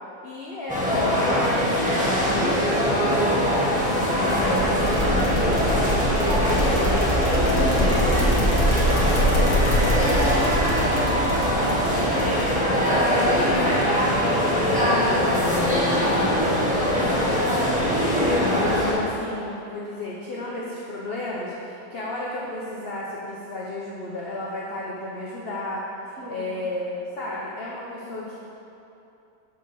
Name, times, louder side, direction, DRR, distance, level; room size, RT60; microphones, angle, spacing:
voice 1, 0.2-4.0 4.4-7.0 13.0-15.8 16.5-18.0 18.3-28.4, left 1 dB, 45° left, -5 dB, 0.9 m, -33 dB
sound 1, 0.7-18.9, equal, 5° right, 1.3 m, -22 dB
sound 2, 4.3-13.5, equal, 85° left, 2.1 m, -25 dB
voice 2, 6.3-6.7 7.2-12.3 26.2-26.6, right 2 dB, 45° right, -4 dB, 1.4 m, -32 dB
6.8 x 5.1 x 6.2 m, 2.8 s
omnidirectional pair, 1.7 m